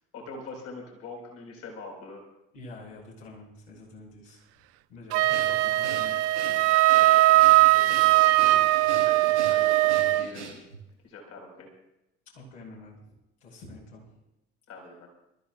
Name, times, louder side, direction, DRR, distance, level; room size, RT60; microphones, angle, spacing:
voice 1, 0.1-2.2 6.7-7.7 8.9-10.6 11.0-11.7 14.7-15.1, left 3 dB, 45° left, 1 dB, 4.1 m, -44 dB
voice 2, 2.5-4.5 4.9-6.3 7.3-8.1 9.2-9.3 12.3-14.2, left 2 dB, 65° left, -3 dB, 5.6 m, -47 dB
Wind instrument woodwind instrument, 5.1-10.3, right 18 dB, 45° right, 0.5 m, -20 dB
Breathing, 5.3-10.8, right 4 dB, 80° right, 3.4 m, -41 dB
29.0 x 14.0 x 2.2 m, 0.84 s
figure-of-eight pair, 60°, 35 cm